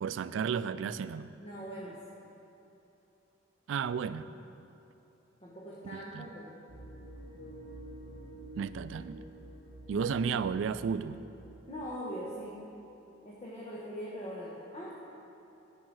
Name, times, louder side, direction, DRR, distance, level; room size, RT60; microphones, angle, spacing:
voice 1, 0.0-1.3 3.7-4.3 5.8-6.3 8.6-9.2 9.9-11.2, right 6 dB, 75° right, 14 dB, 0.3 m, -33 dB
voice 2, 1.4-2.0 5.4-6.6 9.9-10.1 11.7-12.6 13.2-15.0, equal, 35° left, -5 dB, 1.1 m, -41 dB
sound 1, 6.7-12.0, right 1 dB, 60° left, 1.8 m, -49 dB
10.5 x 5.7 x 6.2 m, 3.0 s
head